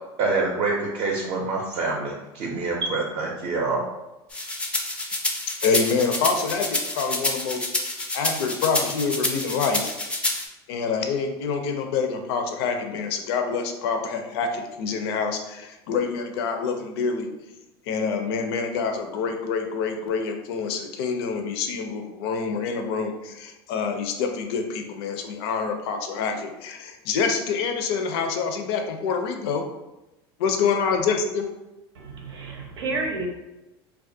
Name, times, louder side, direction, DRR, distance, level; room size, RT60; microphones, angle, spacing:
voice 1, 0.2-3.8, right 3 dB, 50° right, -2 dB, 0.5 m, -26 dB
sound 1, 4.3-10.5, left 2 dB, 10° left, 0.3 m, -28 dB
voice 2, 5.6-9.9 10.7-17.3 17.9-29.7 30.4-31.5, left 5 dB, 70° left, 5 dB, 0.4 m, -26 dB
voice 3, 31.9-33.3, right 3 dB, 90° right, 0 dB, 0.6 m, -30 dB
2.3 x 2.1 x 2.6 m, 0.99 s
hypercardioid pair, 100°, 13 cm